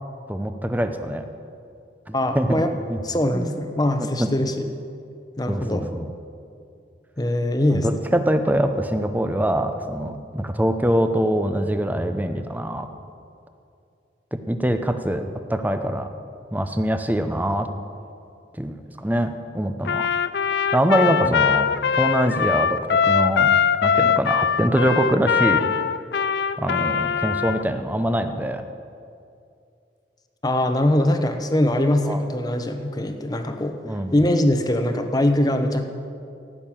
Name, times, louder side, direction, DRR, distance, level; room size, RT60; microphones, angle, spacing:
voice 1, 0.3-1.2 2.1-2.6 2.9-3.0 3.3-3.5 4.2-4.3 5.5-6.1 7.7-12.9 14.3-16.1 16.5-17.7 18.6-20.1 20.7-23.5 23.8-25.6 26.6-28.6 32.1-32.2 33.8-34.1, right 1 dB, 10° right, 8 dB, 0.7 m, -23 dB
voice 2, 2.1-2.7 3.0-4.7 5.4-5.9 7.2-8.1 21.2-21.3 30.4-33.8 34.1-35.9, left 1 dB, 20° left, 6 dB, 0.9 m, -22 dB
Trumpet, 19.8-27.6, left 7 dB, 65° left, 0.4 m, -21 dB
16.5 x 6.6 x 8.8 m, 2.5 s
head